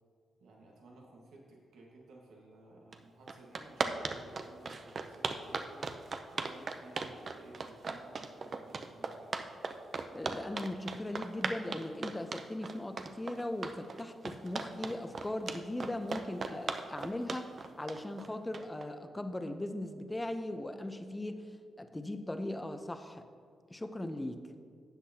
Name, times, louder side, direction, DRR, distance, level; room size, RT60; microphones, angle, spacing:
voice 1, 0.4-5.9 6.3-9.6, right 2 dB, 80° right, -1 dB, 1.6 m, -56 dB
sound 1, 2.9-3.0 3.3-18.8, right 4 dB, 55° right, 0.6 m, -37 dB
voice 2, 10.1-21.5 21.8-23.3 23.7-24.5, left 1 dB, 15° left, 8 dB, 0.8 m, -39 dB
12.5 x 8.0 x 2.9 m, 2.1 s
supercardioid pair, 55°, 0 cm